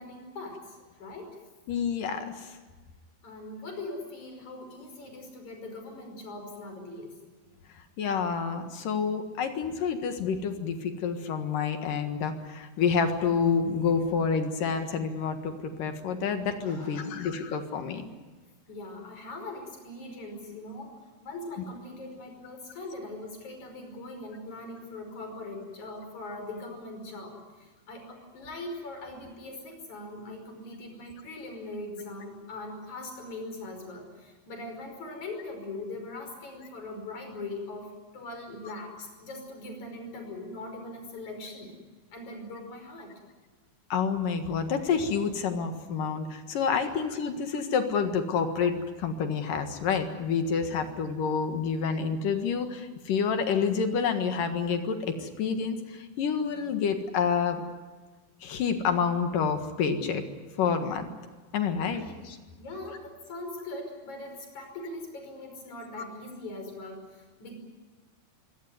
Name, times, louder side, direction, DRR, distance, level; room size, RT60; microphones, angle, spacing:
voice 1, 0.0-1.4 3.2-7.1 16.7-17.2 18.7-41.7 42.1-43.1 46.8-46.9 50.7-50.8 61.9-62.0 62.6-67.5, left 2 dB, 50° left, 4 dB, 6.7 m, -41 dB
voice 2, 1.7-2.5 8.0-18.1 43.9-57.6 58.4-60.2 60.6-61.0 61.5-62.4, left 6 dB, 65° left, 7 dB, 3.1 m, -28 dB
23.5 x 17.5 x 9.6 m, 1.4 s
omnidirectional pair, 4.3 m